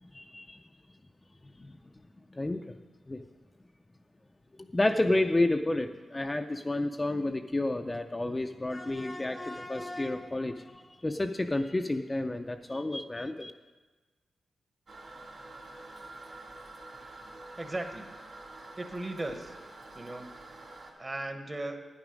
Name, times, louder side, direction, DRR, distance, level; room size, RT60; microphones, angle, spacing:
voice 1, 0.0-0.6 1.6-1.8 2.3-2.7 3.1-3.2 4.6-13.5, left 2 dB, 20° left, 5 dB, 0.4 m, -30 dB
Toilet flush, 14.9-20.9, right 2 dB, 50° right, 2.3 m, -47 dB
voice 2, 17.6-18.1 18.8-19.5 19.9-20.3 21.0-21.9, right 2 dB, 25° right, 7 dB, 1.0 m, -37 dB
10.5 x 9.6 x 5.1 m, 1.2 s
wide cardioid pair, 105°, 0 cm